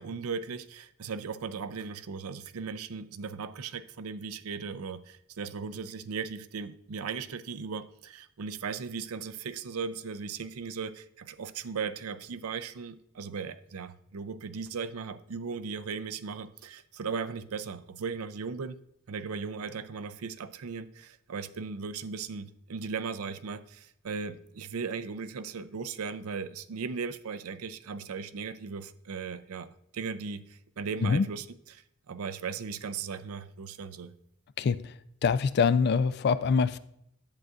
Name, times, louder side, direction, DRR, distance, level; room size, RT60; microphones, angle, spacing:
voice 1, 0.0-18.8 19.1-29.7 29.9-34.1, right 5 dB, 85° right, 13 dB, 0.5 m, -37 dB
voice 2, 35.2-36.8, left 5 dB, 50° left, 15 dB, 0.3 m, -24 dB
10.5 x 7.8 x 2.4 m, 0.75 s
head